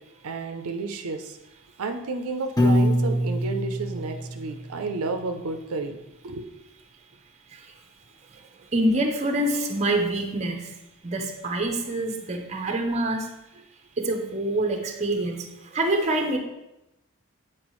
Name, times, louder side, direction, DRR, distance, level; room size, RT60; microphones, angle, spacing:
voice 1, 0.2-1.4 1.8-6.0 6.2-6.4, right 3 dB, 75° right, 6 dB, 0.5 m, -31 dB
Piano, 2.6-4.8, equal, 15° left, 0.7 m, -24 dB
voice 2, 8.7-10.7 11.0-13.3 14.0-15.5 15.7-16.4, right 1 dB, 30° right, 3 dB, 0.7 m, -25 dB
7.8 x 4.4 x 3.1 m, 0.90 s
head